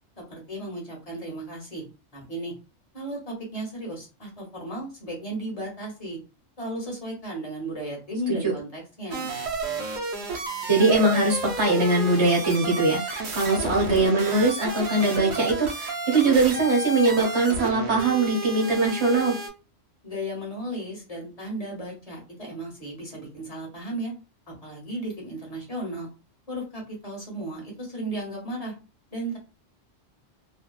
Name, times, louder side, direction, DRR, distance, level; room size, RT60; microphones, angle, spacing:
voice 1, 0.2-1.8 2.1-2.5 2.9-6.2 6.6-9.3 20.0-24.1 24.5-26.1 26.5-28.7 29.1-29.4, right 1 dB, 30° left, -2 dB, 1.1 m, -35 dB
sound 1, 9.1-19.5, right 3 dB, 60° right, 0.9 m, -32 dB
voice 2, 10.7-19.3, right 3 dB, 25° right, -1 dB, 0.8 m, -22 dB
2.7 x 2.2 x 2.3 m, 0.31 s
omnidirectional pair, 1.3 m